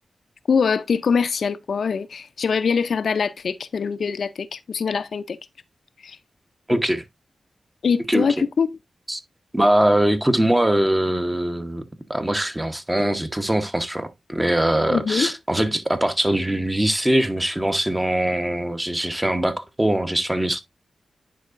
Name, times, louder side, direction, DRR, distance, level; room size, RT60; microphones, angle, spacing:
voice 1, 0.5-5.4 6.0-6.2 6.7-6.8 7.8-8.7 14.9-15.3, left 6 dB, 75° left, 0.5 m, -23 dB
voice 2, 6.7-7.0 8.1-8.2 9.1-9.2 9.5-11.8 12.1-20.6, right 1 dB, 15° right, 1.0 m, -22 dB
10.5 x 4.7 x 2.5 m
cardioid pair, 80°, 0 cm